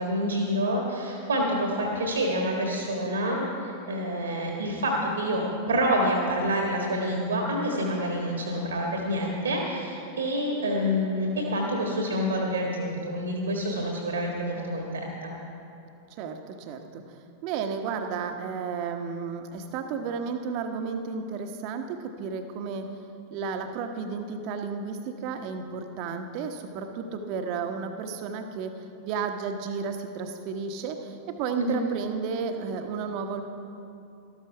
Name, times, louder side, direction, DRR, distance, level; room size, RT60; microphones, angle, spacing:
voice 1, 0.0-15.3 31.5-31.8, equal, 70° right, 0 dB, 1.5 m, -27 dB
voice 2, 16.1-22.9 23.3-33.4, right 5 dB, 45° right, 6 dB, 1.1 m, -33 dB
13.5 x 13.0 x 4.7 m, 2.7 s
figure-of-eight pair, 90°, 0 cm